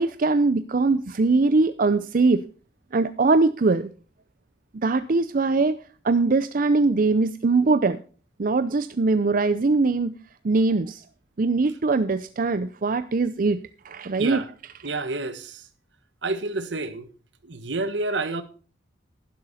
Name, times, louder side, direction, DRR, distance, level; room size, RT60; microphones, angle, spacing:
voice 1, 0.0-2.4 2.9-3.9 4.7-5.8 6.0-8.0 8.4-10.1 10.4-11.0 11.4-13.6 13.8-14.4, right 3 dB, 50° right, 0.5 m, -21 dB
voice 2, 14.8-15.6 16.2-17.1 17.4-18.4, right 2 dB, 75° right, 1.4 m, -29 dB
12.0 x 11.0 x 4.2 m
head